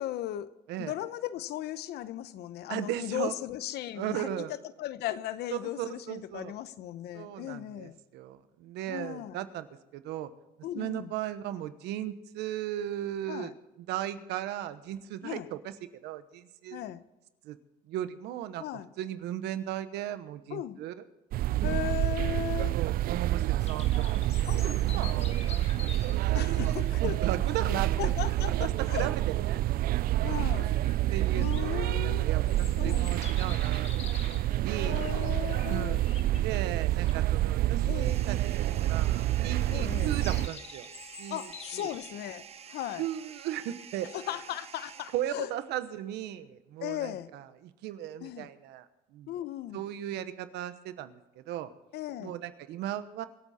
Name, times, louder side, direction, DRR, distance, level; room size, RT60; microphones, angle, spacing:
voice 1, 0.0-0.5 0.8-8.0 8.9-9.4 10.6-11.1 13.3-13.5 15.2-15.5 16.7-17.0 18.6-18.9 20.5-20.8 21.6-22.8 24.5-24.6 26.3-27.3 27.6-29.1 30.2-30.8 31.3-32.3 32.7-33.1 34.7-36.0 37.9-38.2 39.7-40.2 41.3-43.1 44.1-45.5 46.8-47.3 48.2-48.5 49.3-49.8 51.9-52.3, left 13 dB, 75° left, 14 dB, 0.9 m, -37 dB
voice 2, 2.7-3.3 4.0-4.5 5.5-6.5 7.1-9.7 9.9-10.3 10.7-13.5 13.8-15.7 16.0-16.8 17.4-17.6 17.9-18.6 19.0-20.9 21.7-22.0 22.7-24.3 24.6-28.1 28.5-29.6 29.9-30.5 31.1-33.9 34.5-35.0 35.7-36.0 36.4-40.9 41.2-41.4 41.7-41.9 43.0-44.1 45.1-48.9 49.1-49.3 49.7-51.7 52.2-53.3, right 12 dB, 85° right, 12 dB, 1.1 m, -37 dB
sound 1, 21.3-40.5, right 14 dB, 60° right, 0.4 m, -28 dB
sound 2, 23.6-42.1, left 5 dB, 35° left, 1.5 m, -48 dB
sound 3, 38.0-45.7, right 7 dB, 35° right, 0.9 m, -49 dB
25.0 x 8.5 x 4.3 m, 0.99 s
cardioid pair, 110°, 17 cm